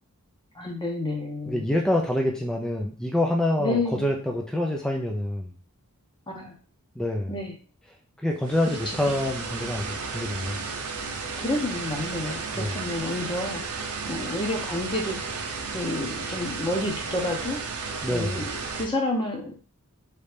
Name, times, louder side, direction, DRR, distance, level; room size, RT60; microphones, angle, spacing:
voice 1, 0.5-1.7 3.6-4.1 6.3-6.5 7.3-7.6 11.0-11.1 11.4-13.6 14.0-15.2 15.7-17.6 18.1-19.5, left 2 dB, 20° left, 1 dB, 0.8 m, -29 dB
voice 2, 1.5-5.5 7.0-7.3 8.2-10.6 12.5-12.7 18.0-18.4, left 1 dB, 5° left, 0 dB, 0.4 m, -26 dB
sound 1, 8.4-18.9, right 4 dB, 75° right, 0.6 m, -33 dB
3.2 x 2.6 x 3.3 m, 0.39 s
head